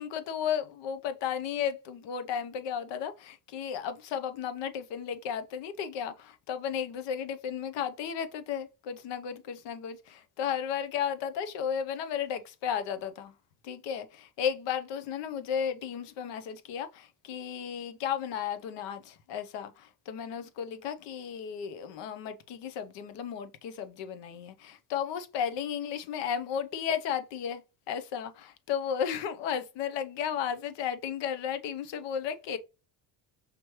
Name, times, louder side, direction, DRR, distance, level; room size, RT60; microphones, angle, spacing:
voice 1, 0.0-13.3 13.6-27.6 27.9-32.6, left 8 dB, 65° left, 0.8 m, -34 dB
5.1 x 3.1 x 3.0 m
cardioid pair, 115°, 47 cm